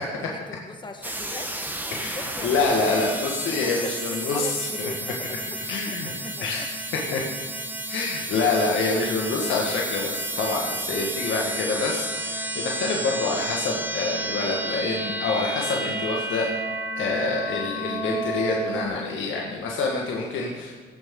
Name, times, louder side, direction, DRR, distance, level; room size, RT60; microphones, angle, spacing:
voice 1, 0.2-1.5 2.1-3.1 3.5-5.4 5.8-6.7 7.1-7.2 8.9-9.1 20.5-20.6, left 2 dB, 25° left, 5 dB, 1.4 m, -40 dB
sound 1, 1.0-18.9, right 1 dB, 10° right, 1.1 m, -31 dB
voice 2, 1.9-4.9 5.6-6.1 6.4-6.7 7.1-7.2 7.9-16.5 17.0-20.7, left 3 dB, 75° left, -2 dB, 1.6 m, -26 dB
17.0 x 7.5 x 3.8 m, 1.5 s
cardioid pair, 90°, 20 cm